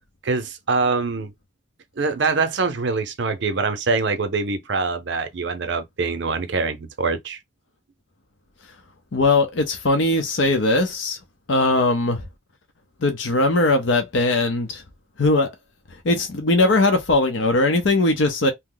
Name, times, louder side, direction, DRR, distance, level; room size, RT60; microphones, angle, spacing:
voice 1, 0.2-1.3 2.0-7.4, right 4 dB, 65° right, 0.6 m, -24 dB
voice 2, 9.1-11.2 11.5-12.2 13.0-14.8 15.2-15.5 16.0-18.5, left 2 dB, 70° left, 0.6 m, -19 dB
2.9 x 2.0 x 3.7 m
head